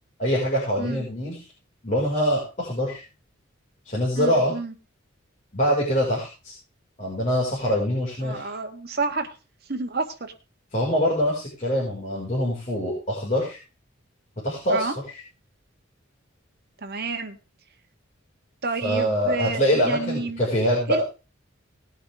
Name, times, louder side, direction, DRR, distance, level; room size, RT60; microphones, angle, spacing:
voice 1, 0.2-1.4 1.8-3.0 3.8-4.5 5.5-6.5 7.0-8.5 10.7-13.6 14.4-14.9 18.8-21.0, equal, 35° left, -5 dB, 5.5 m, -24 dB
voice 2, 4.1-4.7 8.2-9.3 9.7-10.3 14.7-15.0 16.8-17.4 18.6-20.4 20.9-21.0, right 3 dB, 50° right, 5 dB, 1.7 m, -30 dB
19.5 x 8.6 x 3.6 m, 0.32 s
head